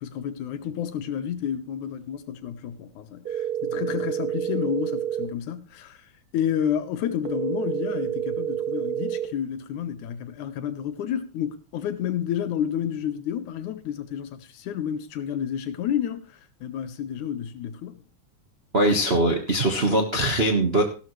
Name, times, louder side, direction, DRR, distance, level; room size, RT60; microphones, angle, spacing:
voice 1, 0.0-6.1 6.3-18.1, left 9 dB, 75° left, 2.5 m, -30 dB
sound 1, 3.3-5.3 7.3-9.3, right 10 dB, 85° right, 0.8 m, -28 dB
voice 2, 18.7-20.8, right 1 dB, 40° right, 0.8 m, -21 dB
15.0 x 12.5 x 3.2 m
omnidirectional pair, 3.5 m